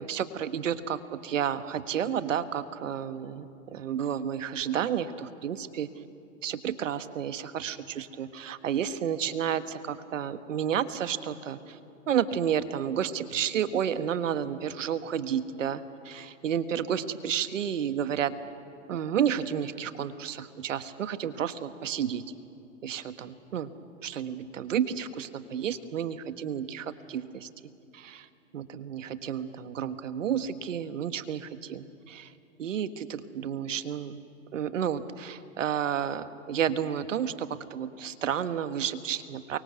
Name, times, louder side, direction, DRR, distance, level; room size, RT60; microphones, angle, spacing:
voice 1, 0.0-5.9 6.4-11.8 12.1-18.3 18.9-22.2 22.8-23.7 24.0-27.5 27.9-28.2 28.5-32.3 32.6-34.2 34.5-39.6, right 9 dB, 70° right, 12 dB, 1.6 m, -31 dB
29.0 x 24.0 x 8.1 m, 2.6 s
hypercardioid pair, 125°, 39 cm